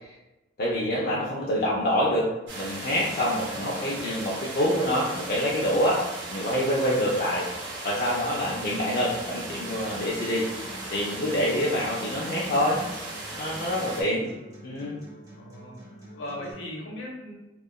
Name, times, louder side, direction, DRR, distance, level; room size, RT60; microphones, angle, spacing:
voice 1, 0.6-2.3 2.5-6.0 6.3-7.5 7.8-10.4 10.9-12.8 13.4-14.3 14.6-15.0, equal, 55° left, -5 dB, 0.4 m, -26 dB
sound 1, 2.5-14.0, right 2 dB, 70° right, 0.7 m, -37 dB
voice 2, 3.5-4.0 6.5-7.0 8.1-8.4 13.8-14.0 15.4-17.3, left 1 dB, 80° left, -2 dB, 0.8 m, -40 dB
Acoustic guitar, 8.5-16.5, equal, 20° right, 1.1 m, -46 dB
2.7 x 2.3 x 2.2 m, 0.97 s
head